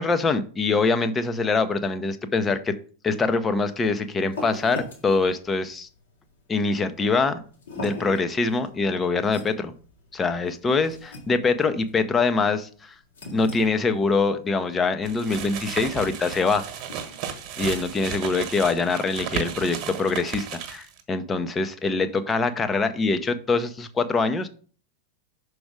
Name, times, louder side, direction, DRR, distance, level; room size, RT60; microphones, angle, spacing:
voice 1, 0.0-2.7 3.0-5.9 6.5-7.4 7.7-9.7 10.1-12.9 13.3-16.7 17.6-24.5, left 4 dB, 15° left, 10 dB, 0.8 m, -24 dB
sound 1, 3.6-18.6, left 2 dB, 70° left, 2.6 m, -43 dB
sound 2, 15.0-21.0, right 8 dB, 40° right, 1.4 m, -34 dB
6.2 x 4.8 x 4.8 m, 0.41 s
figure-of-eight pair, 90°, 0 cm